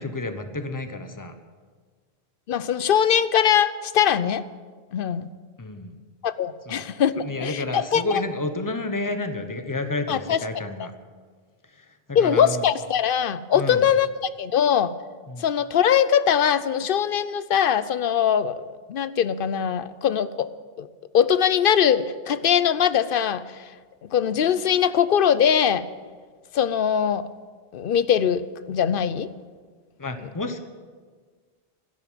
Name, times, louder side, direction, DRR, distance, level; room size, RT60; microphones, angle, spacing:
voice 1, 0.0-1.3 5.6-6.0 6.7-6.8 7.2-10.9 11.8-12.7 13.5-13.9 15.3-15.5 30.0-30.6, left 2 dB, 20° left, 8 dB, 1.0 m, -30 dB
voice 2, 2.5-4.4 4.9-5.3 6.2-8.2 10.1-10.4 12.1-14.1 14.4-14.9 15.4-20.5 20.8-20.9 21.1-23.6 24.1-25.8 26.5-27.3 27.7-29.3, left 8 dB, 65° left, 15 dB, 0.8 m, -21 dB
12.5 x 11.0 x 9.3 m, 1.6 s
omnidirectional pair, 1.0 m